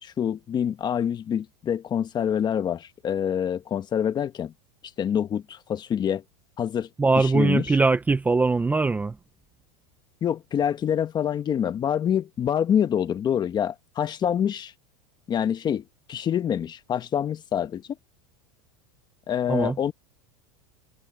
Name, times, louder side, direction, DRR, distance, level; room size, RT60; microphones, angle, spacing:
voice 1, 0.0-4.5 5.0-6.2 6.6-6.9 7.2-7.8 10.2-14.7 15.3-15.8 16.1-17.9 19.3-19.9, left 9 dB, 25° left, 1.2 m, -26 dB
voice 2, 7.0-9.2 19.5-19.8, right 3 dB, 10° right, 0.8 m, -21 dB
supercardioid pair, 140°, 17 cm